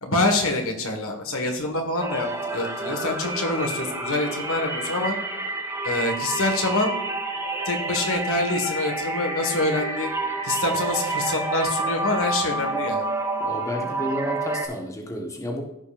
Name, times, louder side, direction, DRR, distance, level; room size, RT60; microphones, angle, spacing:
voice 1, 0.0-5.1 5.8-7.0 7.6-10.1 10.4-13.0, left 2 dB, 65° left, 3 dB, 1.6 m, -25 dB
sound 1, 2.0-14.7, right 2 dB, 10° right, 1.2 m, -29 dB
voice 2, 13.4-15.6, equal, 15° left, 1 dB, 1.3 m, -31 dB
15.0 x 5.5 x 2.6 m, 0.87 s
head